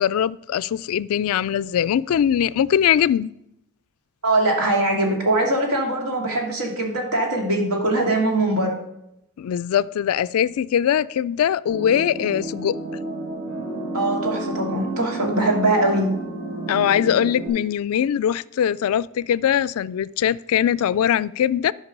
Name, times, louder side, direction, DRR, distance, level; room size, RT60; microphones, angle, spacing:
voice 1, 0.0-3.3 9.4-12.8 16.7-21.7, left 9 dB, 75° left, 0.3 m, -21 dB
voice 2, 4.2-8.8 13.9-16.1, right 2 dB, 85° right, 2.7 m, -22 dB
sound 1, 11.7-17.5, right 1 dB, 30° right, 4.5 m, -31 dB
12.5 x 5.3 x 5.3 m
head